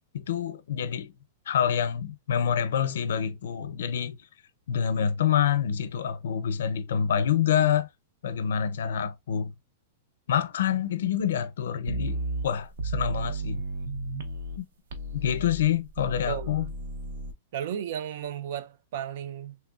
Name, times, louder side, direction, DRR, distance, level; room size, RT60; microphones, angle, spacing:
voice 1, 0.1-1.1 1.5-4.2 4.7-7.9 8.2-9.5 10.3-13.6 14.6-14.7 15.1-16.6, left 8 dB, 75° left, 0.5 m, -27 dB
sound 1, 11.9-14.6 14.9-17.3, right 2 dB, 75° right, 0.7 m, -34 dB
voice 2, 17.5-19.6, right 9 dB, 50° right, 0.3 m, -34 dB
3.3 x 3.0 x 2.3 m
supercardioid pair, 165°, 0 cm